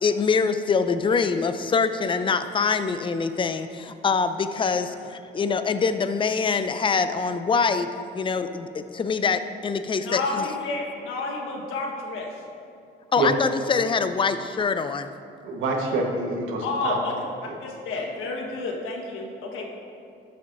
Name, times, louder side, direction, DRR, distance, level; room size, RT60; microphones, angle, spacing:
voice 1, 0.0-10.4 13.1-15.1, left 5 dB, 25° left, 10 dB, 0.5 m, -24 dB
voice 2, 10.0-12.3 16.6-17.2 17.6-19.6, left 3 dB, 85° left, 0 dB, 1.4 m, -30 dB
voice 3, 15.4-17.0 17.4-17.5, right 2 dB, 85° right, 1 dB, 1.3 m, -27 dB
12.5 x 7.7 x 2.6 m, 2.6 s
cardioid pair, 90°, 20 cm